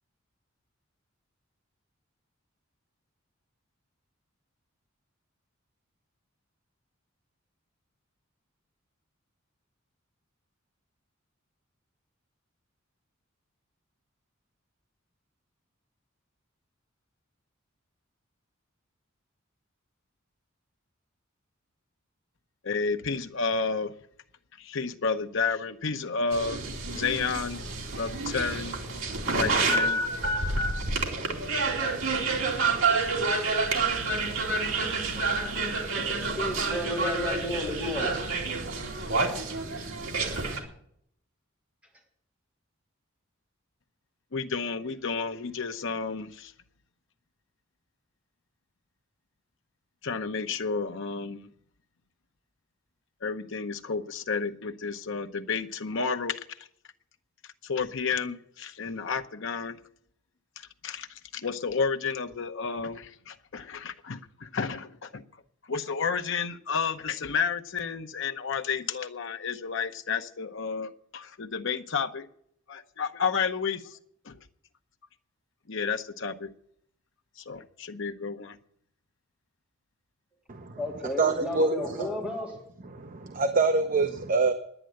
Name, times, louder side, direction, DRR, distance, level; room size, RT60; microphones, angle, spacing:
voice 1, 22.6-23.9 24.6-27.6 28.0-28.8 29.3-30.0 44.3-46.5 50.0-51.5 53.2-56.6 57.6-59.8 60.8-65.2 65.7-72.3 72.7-74.0 74.2-74.4 75.7-76.5 77.4-78.6, left 5 dB, 65° left, 0.8 m, -31 dB
sound 1, 26.3-40.6, right 3 dB, 70° right, 2.6 m, -28 dB
voice 2, 35.9-38.2 39.1-39.5 80.8-82.6, left 1 dB, 5° right, 3.2 m, -33 dB
voice 3, 80.5-80.8 81.2-82.1 82.9-84.5, right 3 dB, 40° right, 0.8 m, -25 dB
10.5 x 9.9 x 7.7 m
head